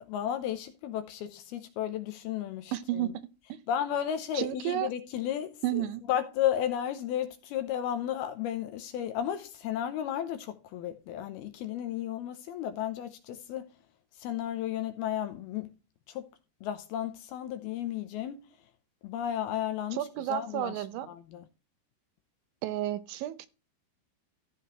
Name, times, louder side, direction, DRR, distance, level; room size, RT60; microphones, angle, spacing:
voice 1, 0.0-3.1 3.7-13.7 14.2-15.7 16.1-16.3 16.6-18.4 19.0-21.4, left 10 dB, 75° left, 2.4 m, -33 dB
voice 2, 2.7-3.2 4.3-4.9 5.6-6.0 19.9-21.1 22.6-23.5, right 13 dB, 85° right, 3.2 m, -32 dB
15.0 x 5.6 x 3.0 m
omnidirectional pair, 5.2 m